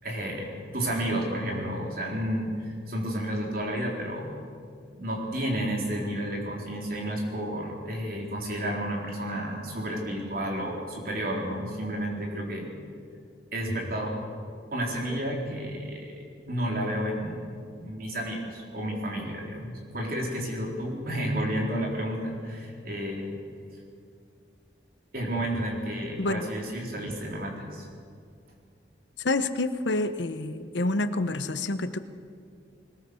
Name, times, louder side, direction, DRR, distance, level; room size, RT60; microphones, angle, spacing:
voice 1, 0.0-4.4 5.0-12.7 13.5-14.2 14.7-23.4 25.1-27.9, equal, 50° right, -1 dB, 4.0 m, -31 dB
voice 2, 29.2-32.0, left 2 dB, 75° left, 10 dB, 1.0 m, -28 dB
21.0 x 20.0 x 6.4 m, 2.2 s
head